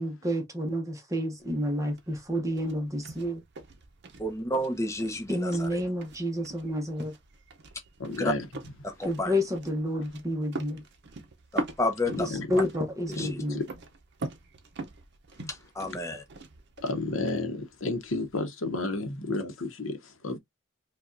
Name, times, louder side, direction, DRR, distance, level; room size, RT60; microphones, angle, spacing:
voice 1, 0.0-3.4 5.3-7.2 9.1-10.8 12.2-13.6, equal, 15° right, 0.8 m, -30 dB
sound 1, 1.4-18.4, right 2 dB, 55° right, 0.7 m, -43 dB
voice 2, 4.2-5.8 8.1-8.3 8.8-9.3 11.5-12.3 13.2-13.4 15.5-16.2, left 1 dB, 15° left, 0.8 m, -31 dB
voice 3, 8.0-8.5 12.1-12.5 13.2-13.6 15.4-15.5 15.8-16.0 16.8-20.4, left 2 dB, 80° left, 0.9 m, -32 dB
5.0 x 2.3 x 2.5 m
head